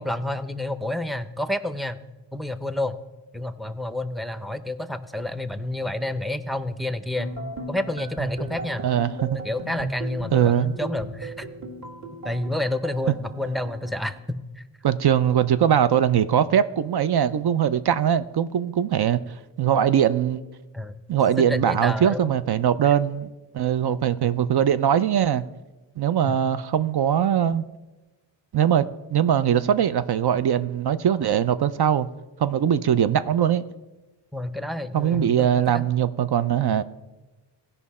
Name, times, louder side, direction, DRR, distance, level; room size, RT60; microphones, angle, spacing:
voice 1, 0.0-3.0 3.3-7.3 7.7-8.9 9.3-11.5 12.2-14.6 20.7-21.0 21.5-22.3 24.2-24.3 26.2-26.4 34.3-35.9, left 1 dB, ahead, 12 dB, 0.5 m, -29 dB
sound 1, 7.2-14.2, right 2 dB, 40° right, 1.8 m, -36 dB
voice 2, 8.8-9.4 10.3-10.8 14.8-19.2 19.6-20.4 21.1-25.4 26.0-27.6 28.5-32.1 32.4-33.6 34.9-36.8, right 9 dB, 60° right, 13 dB, 0.5 m, -21 dB
16.5 x 5.5 x 4.2 m, 1.1 s
cardioid pair, 65°, 45 cm